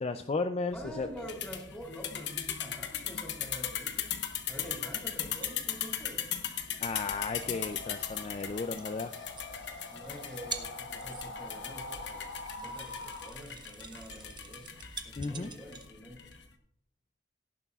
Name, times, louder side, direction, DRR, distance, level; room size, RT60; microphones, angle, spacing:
voice 1, 0.0-1.1 6.8-9.1 15.2-15.5, left 3 dB, 35° left, 9 dB, 0.4 m, -34 dB
sound 1, 0.7-16.5, left 9 dB, 65° left, 1.1 m, -39 dB
voice 2, 0.7-4.1 4.5-6.3 9.9-12.3 12.6-14.7 15.0-16.2, equal, 5° left, -1 dB, 3.1 m, -46 dB
sound 2, 3.8-15.9, right 5 dB, 25° right, 0.8 m, -49 dB
sound 3, 7.1-13.3, left 2 dB, 80° left, 1.3 m, -45 dB
17.5 x 11.0 x 2.4 m, 0.71 s
head